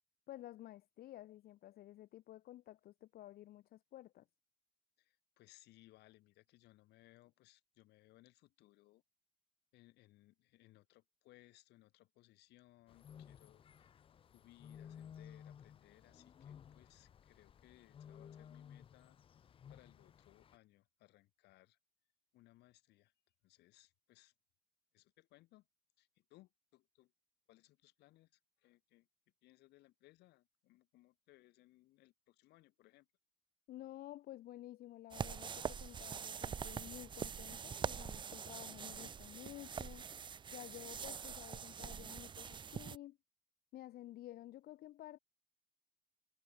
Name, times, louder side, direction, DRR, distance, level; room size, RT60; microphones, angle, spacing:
voice 1, 0.3-4.3 33.7-40.1 40.5-43.2 43.7-45.2, left 14 dB, 65° left, 0.8 m, -52 dB
voice 2, 5.0-9.0 9.7-13.9 14.3-19.4 19.7-21.8 22.3-23.1 23.4-24.3 24.9-25.7 26.0-27.1 27.5-29.1 29.4-33.1, left 18 dB, 85° left, 5.1 m, -66 dB
sound 1, 12.9-20.6, left 8 dB, 30° left, 0.4 m, -57 dB
sound 2, 35.1-43.0, right 7 dB, 30° right, 0.5 m, -44 dB
cardioid pair, 110°, 17 cm